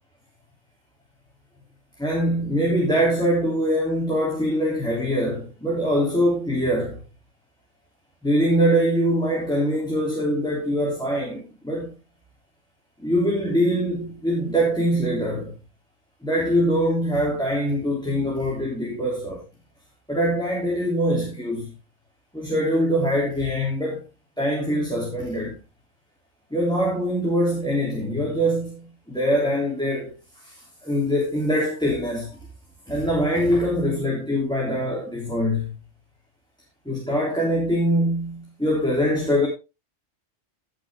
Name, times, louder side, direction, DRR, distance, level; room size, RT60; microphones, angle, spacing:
voice 1, 2.0-7.0 8.2-11.9 13.0-15.5 16.2-19.4 20.1-21.7 22.3-24.0 24.4-25.5 26.5-30.1 30.8-32.4 32.9-35.7 36.8-39.5, equal, 5° left, 3.3 m, -23 dB
16.0 x 6.5 x 3.7 m
omnidirectional pair, 1.2 m